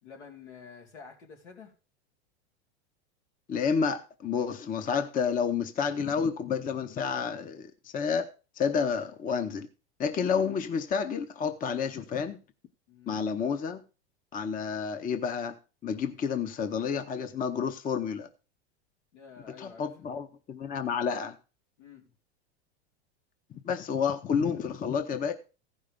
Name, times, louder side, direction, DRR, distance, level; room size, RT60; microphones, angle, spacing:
voice 1, 0.0-1.7 12.9-13.2 19.1-19.9 21.8-22.1, left 6 dB, 85° left, 3.8 m, -49 dB
voice 2, 3.5-8.3 8.6-9.7 10.0-12.4 13.1-13.8 14.3-15.6 15.8-18.3 19.6-21.4 23.5-25.3, left 6 dB, 25° left, 0.8 m, -30 dB
15.0 x 5.5 x 5.1 m
supercardioid pair, 120°, 34 cm